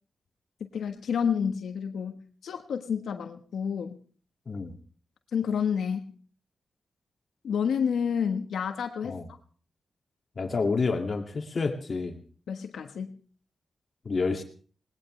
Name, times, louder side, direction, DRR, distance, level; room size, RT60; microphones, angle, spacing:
voice 1, 0.6-4.0 5.3-6.1 7.4-9.2 12.5-13.2, left 7 dB, 90° left, 6 dB, 1.3 m, -29 dB
voice 2, 10.4-12.2 14.0-14.4, left 4 dB, 50° left, 4 dB, 2.3 m, -29 dB
20.5 x 20.0 x 3.3 m, 0.43 s
cardioid pair, 75°, 0 cm